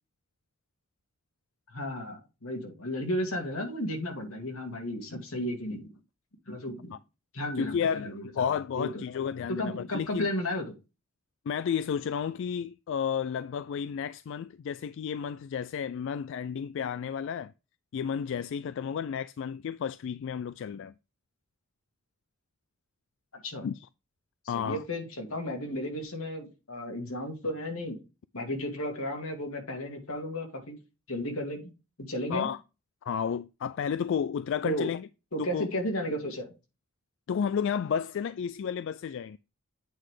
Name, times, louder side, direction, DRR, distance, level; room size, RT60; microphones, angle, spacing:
voice 1, 1.7-5.9 6.5-7.0 7.3-8.2 8.8-9.0 9.5-10.8 23.3-23.7 24.5-28.0 28.3-30.8 31.1-31.7 32.0-32.5 34.6-34.9 35.3-36.5, left 1 dB, 90° left, 2.4 m, -33 dB
voice 2, 7.6-10.3 11.5-17.5 17.9-20.9 23.6-23.9 24.5-24.8 32.3-32.6 33.0-35.1 35.4-35.7 37.3-39.4, left 7 dB, 60° left, 0.3 m, -32 dB
8.6 x 3.9 x 4.8 m
head